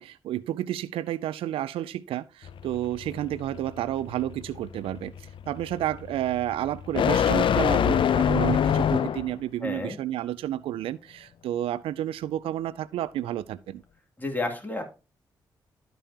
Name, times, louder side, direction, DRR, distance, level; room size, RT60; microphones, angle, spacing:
voice 1, 0.0-5.1 5.5-13.8, right 13 dB, 80° right, 0.4 m, -31 dB
sound 1, 2.4-9.4, left 8 dB, 65° left, 0.6 m, -26 dB
voice 2, 9.6-10.0 14.2-14.8, left 2 dB, 20° left, 2.8 m, -31 dB
13.0 x 5.2 x 2.9 m
supercardioid pair, 50°, 9 cm